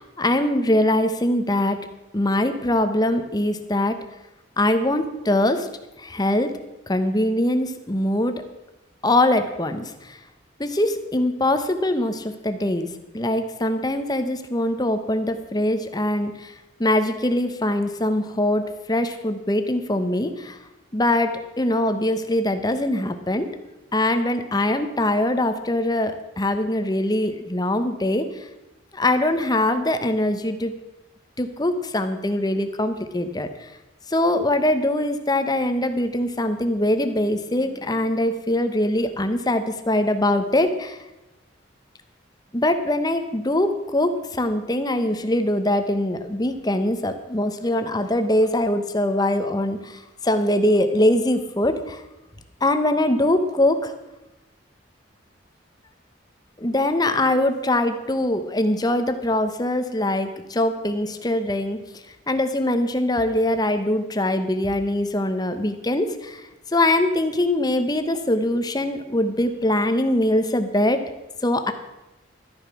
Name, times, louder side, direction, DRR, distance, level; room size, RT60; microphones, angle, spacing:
voice 1, 0.0-1.8 2.1-4.0 4.6-5.7 6.0-6.5 6.9-8.4 9.0-10.2 10.6-12.9 13.1-16.5 16.8-20.6 20.9-23.5 23.9-28.3 28.9-30.7 31.4-33.5 34.1-41.0 42.5-52.0 52.6-53.9 56.6-61.8 62.3-66.4 66.7-71.0 71.4-71.7, left 1 dB, 20° left, 8 dB, 1.0 m, -22 dB
12.5 x 10.0 x 6.1 m, 1.0 s
head